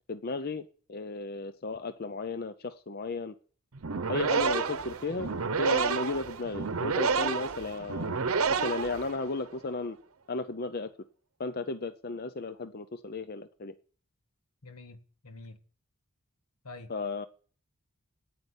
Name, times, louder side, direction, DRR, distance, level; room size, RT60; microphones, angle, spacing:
voice 1, 0.1-3.3 4.1-5.3 5.6-8.2 8.5-10.0 10.3-10.9 11.4-13.7 16.9-17.3, left 3 dB, 45° left, 0.5 m, -34 dB
sound 1, 3.7-9.5, right 5 dB, 70° right, 0.8 m, -30 dB
voice 2, 14.6-15.6 16.6-16.9, left 3 dB, 85° left, 1.6 m, -47 dB
9.6 x 9.3 x 8.1 m
head